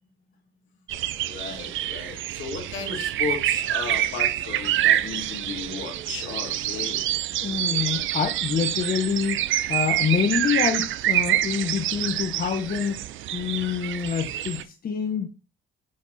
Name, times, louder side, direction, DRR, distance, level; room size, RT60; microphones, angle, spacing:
sound 1, 0.9-14.6, right 13 dB, 75° right, 0.6 m, -27 dB
voice 1, 1.2-7.0, left 5 dB, 75° left, 2 dB, 2.4 m, -35 dB
voice 2, 7.4-9.4 9.7-13.0 13.3-15.3, left 7 dB, 50° left, 4 dB, 1.0 m, -26 dB
8.7 x 3.4 x 4.1 m, 0.31 s
cardioid pair, 90°, 20 cm